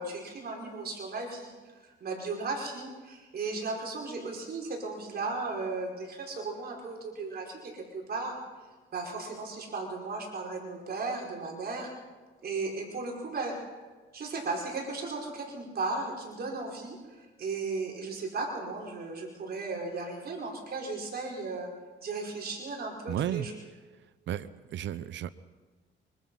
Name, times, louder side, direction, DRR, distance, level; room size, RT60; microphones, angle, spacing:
voice 1, 0.0-8.4 8.9-11.9 12.4-13.5 14.1-21.7 22.0-23.5, right 3 dB, 50° right, -1 dB, 5.3 m, -36 dB
voice 2, 23.1-23.5 24.3-25.3, right 10 dB, 70° right, 15 dB, 0.8 m, -33 dB
24.5 x 24.5 x 5.7 m, 1.3 s
cardioid pair, 90°, 20 cm